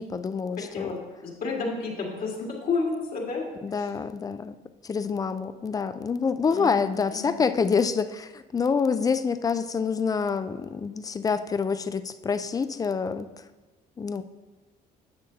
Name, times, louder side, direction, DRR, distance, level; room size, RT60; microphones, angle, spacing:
voice 1, 0.0-1.0 3.6-4.6 4.8-13.3 14.0-14.2, left 5 dB, 20° left, 12 dB, 0.4 m, -27 dB
voice 2, 0.7-3.9 6.5-7.4, left 4 dB, 60° left, -2 dB, 2.0 m, -31 dB
10.0 x 6.8 x 2.8 m, 1.2 s
cardioid pair, 110°, 17 cm